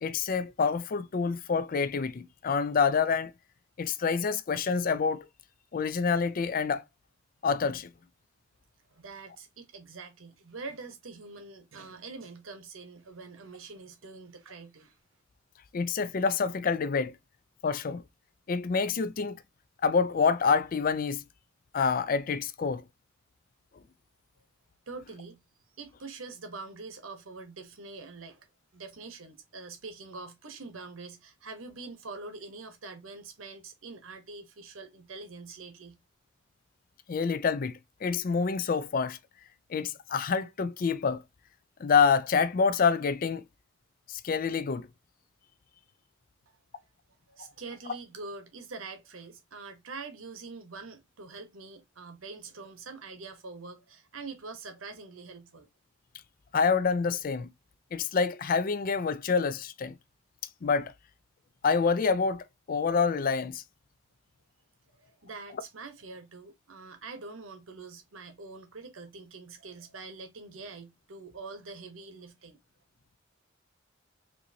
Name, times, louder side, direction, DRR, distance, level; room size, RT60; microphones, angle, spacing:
voice 1, 0.0-3.3 3.8-5.3 5.7-6.8 7.4-7.9 15.7-17.1 17.6-18.0 18.5-19.4 19.8-21.2 21.7-22.8 37.1-39.2 39.7-41.2 41.8-43.4 44.1-44.9 56.5-57.5 57.9-59.9 60.6-60.9 61.6-63.6, left 5 dB, 45° left, 0.4 m, -27 dB
voice 2, 8.9-15.0 24.9-25.4 25.7-36.0 46.7-46.9 47.3-55.7 65.0-72.6, right 3 dB, 75° right, 1.0 m, -44 dB
4.5 x 2.7 x 2.7 m
head